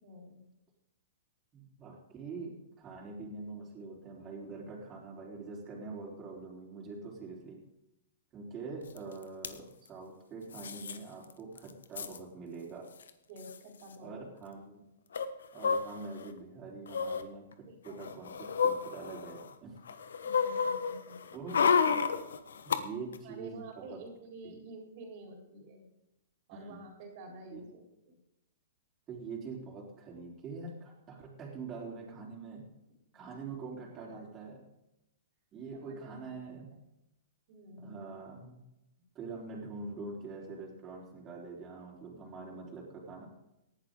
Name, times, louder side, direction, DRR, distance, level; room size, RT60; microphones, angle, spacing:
voice 1, 0.0-0.5 13.3-14.3 17.7-18.0 18.9-19.3 20.4-21.2 21.5-21.6 23.2-25.9 26.5-28.2 33.2-33.3 34.0-34.2 35.7-36.3 37.5-38.1, right 2 dB, 50° right, 1 dB, 4.1 m, -49 dB
voice 2, 1.5-7.6 8.3-12.9 14.0-14.9 15.5-19.8 21.3-21.6 22.6-24.0 26.5-26.8 27.5-27.6 29.1-32.6 33.1-34.7 35.5-36.7 37.8-38.6 39.1-43.3, right 4 dB, 25° right, -4 dB, 4.0 m, -44 dB
sound 1, 9.0-9.1 9.2-9.5 10.5-11.0 11.3-11.4 11.6-12.2 13.0-13.1 13.4-13.6 15.1-16.3 16.9-17.2 17.9-19.5 19.9-22.8 23.1-23.2, left 6 dB, 85° left, 1.2 m, -31 dB
18.5 x 11.5 x 3.8 m, 0.89 s
hypercardioid pair, 135°, 0 cm